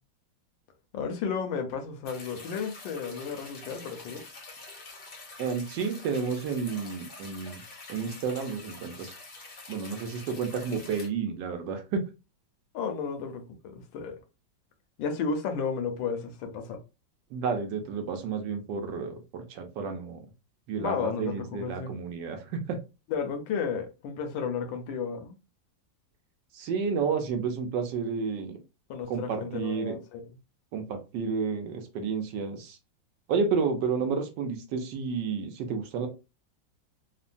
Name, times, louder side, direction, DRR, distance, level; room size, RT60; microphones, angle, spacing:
voice 1, 0.9-4.2 12.7-14.2 15.0-16.8 20.8-22.0 23.1-25.4 28.9-30.2, left 6 dB, 80° left, 1.4 m, -33 dB
sound 1, 2.0-11.1, left 3 dB, 55° left, 0.6 m, -46 dB
voice 2, 5.4-7.6 7.9-9.1 9.7-12.0 17.3-20.2 20.7-22.8 26.5-28.6 29.1-30.0 30.7-32.8 33.3-36.1, right 5 dB, 75° right, 1.3 m, -31 dB
3.6 x 2.1 x 2.5 m
omnidirectional pair, 2.0 m